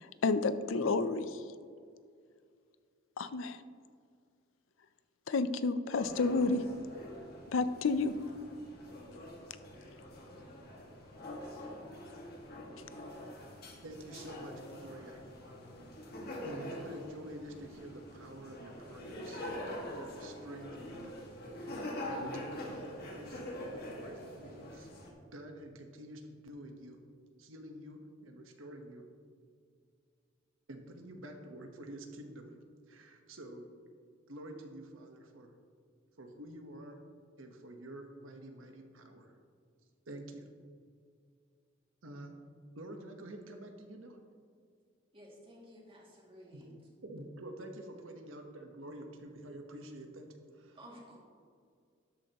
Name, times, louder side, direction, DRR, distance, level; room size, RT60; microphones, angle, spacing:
voice 1, 0.2-1.3 3.2-3.6 5.3-6.6 7.5-8.1, left 3 dB, 80° left, 13 dB, 0.5 m, -30 dB
sound 1, 5.9-25.1, left 1 dB, 55° left, 1.8 m, -45 dB
voice 2, 13.8-15.4 16.4-21.2 22.1-24.9 25.3-27.0 27.4-29.0 30.7-32.5 32.9-33.7 34.3-35.5 36.2-37.0 37.4-39.3 40.1-40.5 42.0-42.3 42.7-44.2 46.5-46.6 47.0-50.3 50.5-50.8, right 1 dB, 85° right, 4 dB, 1.1 m, -48 dB
voice 3, 45.1-46.7 50.7-51.2, equal, 30° right, -3 dB, 2.3 m, -53 dB
12.5 x 8.6 x 3.0 m, 2.2 s
head